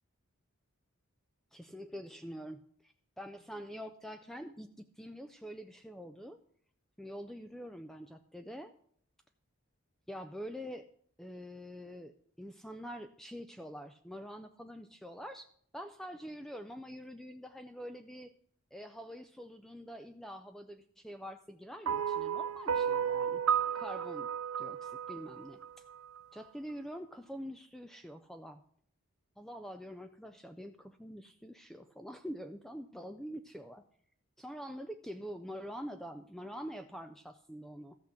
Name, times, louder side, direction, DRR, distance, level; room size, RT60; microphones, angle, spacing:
voice 1, 1.5-6.4 7.0-8.7 10.1-10.9 11.2-15.5 15.7-18.3 18.7-23.4 23.7-24.3 24.6-25.6 26.3-28.6 29.4-33.8 34.4-38.0, equal, ahead, 8 dB, 0.3 m, -45 dB
sound 1, 21.9-26.2, right 8 dB, 75° right, 0.4 m, -33 dB
14.0 x 5.8 x 6.4 m, 0.62 s
head